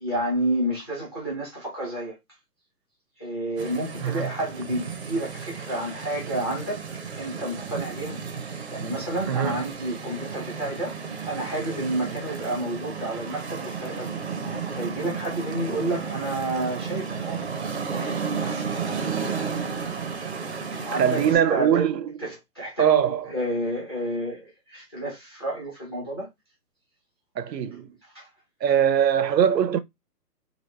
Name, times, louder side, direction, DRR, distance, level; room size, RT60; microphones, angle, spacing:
voice 1, 0.0-2.2 3.2-6.8 7.2-8.2 8.7-10.9 11.3-14.2 14.7-17.5 17.7-18.6 20.8-21.2 21.5-21.9 22.2-23.0 23.3-24.4 24.7-26.3 28.1-28.2, right 1 dB, 15° left, 0.7 m, -30 dB
sound 1, 3.6-21.3, right 5 dB, 45° right, 0.6 m, -33 dB
voice 2, 4.0-4.3 9.3-9.6 20.9-22.2 22.8-23.3 27.4-27.9 28.6-29.8, right 9 dB, 85° right, 0.7 m, -22 dB
3.0 x 2.5 x 3.1 m
hypercardioid pair, 175°, 48 cm